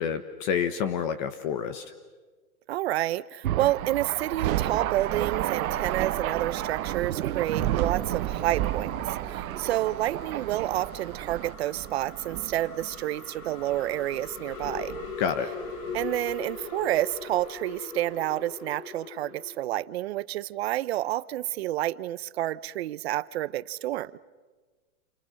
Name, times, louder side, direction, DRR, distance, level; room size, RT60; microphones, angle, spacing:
voice 1, 0.0-1.8 15.2-15.5, left 7 dB, 35° left, 11 dB, 1.2 m, -28 dB
voice 2, 2.7-14.9 15.9-24.2, right 14 dB, 45° right, 17 dB, 0.8 m, -29 dB
Thunder, 3.4-11.5, right 12 dB, 75° right, 1.0 m, -32 dB
Thunder / Rain, 4.3-17.4, right 13 dB, 30° right, 1.4 m, -35 dB
sound 1, 4.5-19.7, left 5 dB, 70° left, 4.0 m, -43 dB
29.0 x 28.5 x 6.5 m, 1.3 s
hypercardioid pair, 160°, 43 cm